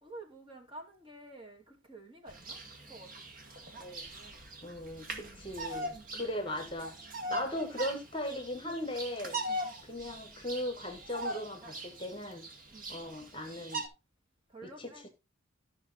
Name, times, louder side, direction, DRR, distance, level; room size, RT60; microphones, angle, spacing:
voice 1, 0.0-2.6 2.9-3.4 5.1-5.5 5.9-6.2 7.2-7.6 9.4-9.7 12.7-13.0 14.5-15.1, right 2 dB, 25° right, 2.4 m, -51 dB
Bird vocalization bird call bird song, 2.3-13.9, right 1 dB, 40° right, 1.9 m, -41 dB
voice 2, 4.6-6.9 7.3-9.4 9.9-12.5 12.9-13.8 14.6-15.1, left 1 dB, 25° left, 1.4 m, -38 dB
13.5 x 5.7 x 4.0 m
head